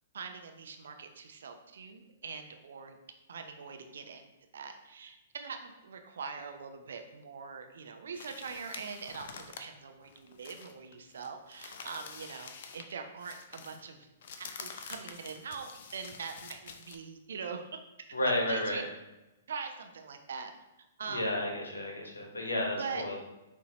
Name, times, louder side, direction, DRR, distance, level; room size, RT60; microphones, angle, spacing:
voice 1, 0.1-3.0 3.3-14.1 14.4-17.8 18.1-18.8 19.5-20.5 21.0-21.4 22.6-23.0, right 5 dB, 65° right, 6 dB, 0.5 m, -42 dB
sound 1, 8.1-12.9 13.2-17.0, left 6 dB, 55° left, 0.5 m, -47 dB
voice 2, 18.1-18.8 21.1-23.2, left 1 dB, 80° left, 0 dB, 1.2 m, -32 dB
6.2 x 2.8 x 2.9 m, 1.0 s
figure-of-eight pair, 115°, 0 cm